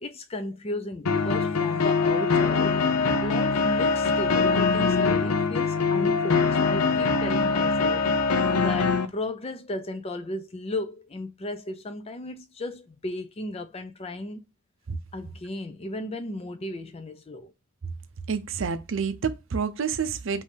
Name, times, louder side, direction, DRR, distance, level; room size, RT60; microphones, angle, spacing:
voice 1, 0.0-2.8 3.2-8.1 8.5-14.4 15.1-17.5, left 1 dB, 25° left, 0.5 m, -35 dB
sound 1, 1.1-9.1, left 4 dB, 85° left, 0.6 m, -23 dB
voice 2, 18.3-20.4, right 6 dB, 60° right, 0.5 m, -28 dB
5.2 x 2.7 x 3.3 m
head